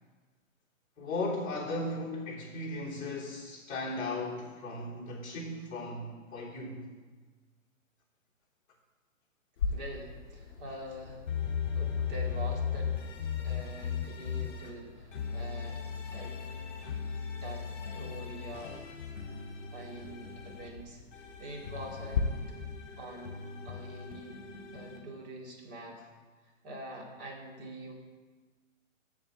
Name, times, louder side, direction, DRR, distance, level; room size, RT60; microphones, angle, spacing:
voice 1, 1.0-6.9 16.8-17.0, left 2 dB, 20° left, -6 dB, 3.3 m, -37 dB
sound 1, 9.6-22.2, left 6 dB, 60° left, 2.3 m, -42 dB
voice 2, 9.7-11.3 11.7-13.0 13.4-16.4 17.4-17.7 17.9-18.8 19.7-22.6 23.0-24.4 24.7-26.0 26.6-27.9, right 1 dB, 30° right, -1 dB, 2.5 m, -45 dB
sound 2, 11.3-14.7 15.1-20.7 21.1-25.0, left 7 dB, 40° left, 3.0 m, -37 dB
8.7 x 7.2 x 8.2 m, 1.4 s
hypercardioid pair, 160°, 39 cm